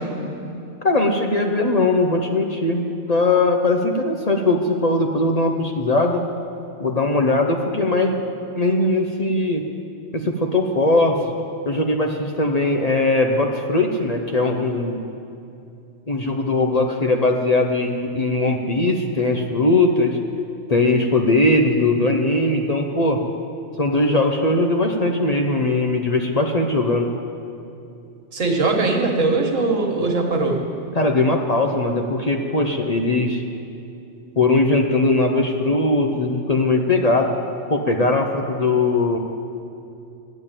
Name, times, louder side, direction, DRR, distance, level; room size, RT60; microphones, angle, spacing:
voice 1, 0.8-6.2 6.8-8.2 8.6-9.6 10.1-11.2 11.7-15.0 16.1-20.2 20.7-23.2 23.8-27.1 30.9-33.4 34.4-37.4 37.7-39.2, left 2 dB, 40° left, 3 dB, 0.7 m, -20 dB
voice 2, 28.3-30.6, right 3 dB, 80° right, 1 dB, 1.8 m, -20 dB
12.0 x 8.4 x 8.9 m, 2.7 s
omnidirectional pair, 1.3 m